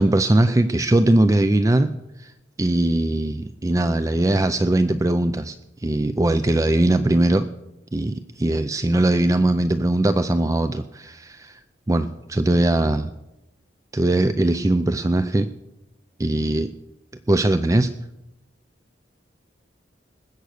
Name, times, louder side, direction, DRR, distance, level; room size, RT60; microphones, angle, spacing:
voice 1, 0.0-1.9 2.2-2.3 2.6-7.5 7.9-11.6 11.9-13.1 13.9-15.5 16.2-16.7 17.3-17.9, right 1 dB, 15° right, 11 dB, 0.4 m, -20 dB
20.0 x 8.1 x 6.6 m, 0.92 s
head